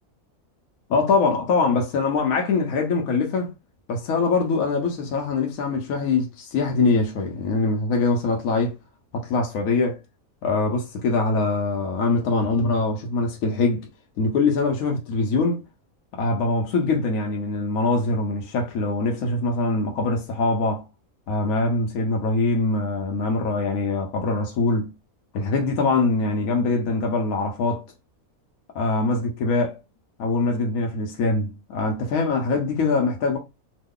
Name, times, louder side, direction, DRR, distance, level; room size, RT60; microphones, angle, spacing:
voice 1, 0.9-3.5 3.9-8.7 9.1-10.0 10.4-13.9 14.2-15.6 16.1-20.8 21.3-24.9 25.3-27.8 28.7-29.8 30.2-33.4, left 3 dB, 70° left, 1.0 m, -23 dB
3.0 x 2.2 x 3.6 m
omnidirectional pair, 1.5 m